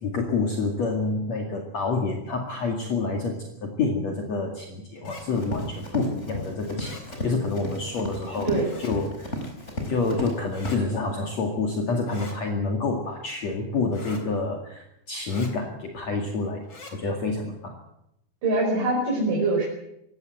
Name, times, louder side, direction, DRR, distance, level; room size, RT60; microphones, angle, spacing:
voice 1, 0.0-7.0 7.2-8.5 8.8-9.3 9.9-16.6 16.9-17.8, left 3 dB, 50° left, 2 dB, 3.2 m, -28 dB
sound 1, 5.0-5.2 6.8-7.0 8.6-8.9 10.5-10.8 12.1-12.4 13.9-14.2 15.2-15.5 16.6-16.9, left 3 dB, 35° left, 4.0 m, -43 dB
Run, 5.2-10.4 10.6-10.7, left 1 dB, 20° left, 4.7 m, -33 dB
voice 2, 18.4-19.7, right 2 dB, 60° right, -2 dB, 6.6 m, -23 dB
21.5 x 17.0 x 7.9 m, 0.81 s
omnidirectional pair, 4.2 m